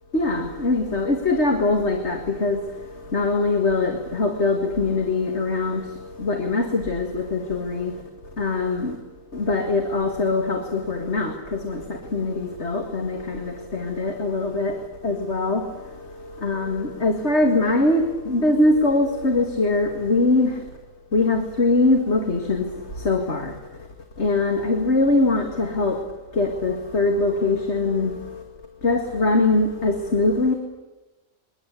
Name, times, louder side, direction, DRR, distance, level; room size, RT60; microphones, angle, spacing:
voice 1, 0.1-8.0 8.4-9.0 9.3-20.7 21.1-23.6 24.2-26.0 26.3-28.4 28.8-30.5, left 2 dB, 55° left, 2.5 m, -22 dB
29.0 x 22.5 x 8.5 m
omnidirectional pair, 1.4 m